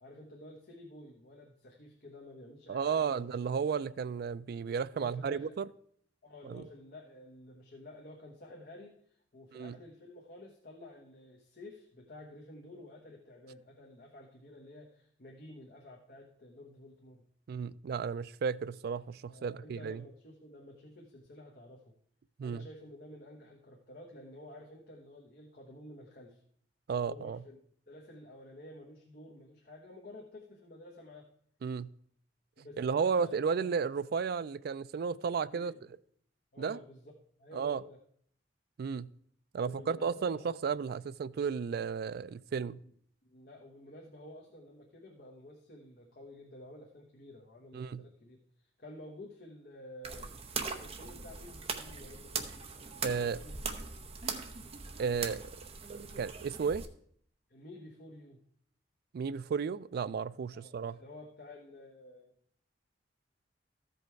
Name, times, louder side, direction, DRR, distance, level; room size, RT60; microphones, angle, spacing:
voice 1, 0.0-3.3 4.9-5.6 6.2-17.2 19.3-21.9 22.4-26.4 27.1-27.6 27.9-31.3 32.6-33.8 35.5-35.9 36.5-37.1 37.4-38.0 39.6-40.6 42.8-42.9 43.2-50.3 50.8-52.5 53.2-53.9 57.5-58.4 60.5-62.3, left 1 dB, 55° left, 1.1 m, -51 dB
voice 2, 2.7-5.6 6.4-6.6 9.5-9.8 17.5-20.0 22.4-22.6 26.9-27.4 31.6-31.9 32.8-35.7 36.6-36.8 37.5-37.8 38.8-39.1 39.5-42.8 47.7-48.0 53.0-53.4 55.0-55.5 55.9-56.9 59.1-61.0, right 6 dB, 60° right, 0.3 m, -33 dB
sound 1, 50.0-56.9, right 5 dB, 35° right, 0.8 m, -40 dB
14.0 x 5.3 x 4.5 m
head